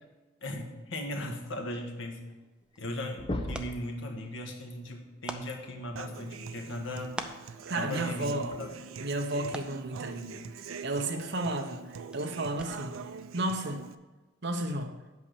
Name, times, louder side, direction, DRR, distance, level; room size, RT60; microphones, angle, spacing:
voice 1, 0.4-2.2 2.8-7.2 7.7-8.7, left 1 dB, 70° left, 2 dB, 1.5 m, -38 dB
sound 1, 2.3-2.4 2.6-2.9 3.2-3.8 5.5-5.6 7.5-7.6 8.5-8.6, left 1 dB, 25° left, 0.7 m, -35 dB
sound 2, 2.4-13.1, right 1 dB, 5° right, 0.5 m, -48 dB
Human voice / Acoustic guitar, 6.0-13.9, right 5 dB, 80° right, 0.5 m, -43 dB
voice 2, 7.7-8.6 9.0-12.9 13.3-13.8 14.4-14.9, right 1 dB, 55° right, 5 dB, 0.9 m, -33 dB
8.5 x 5.5 x 6.8 m, 1.2 s
head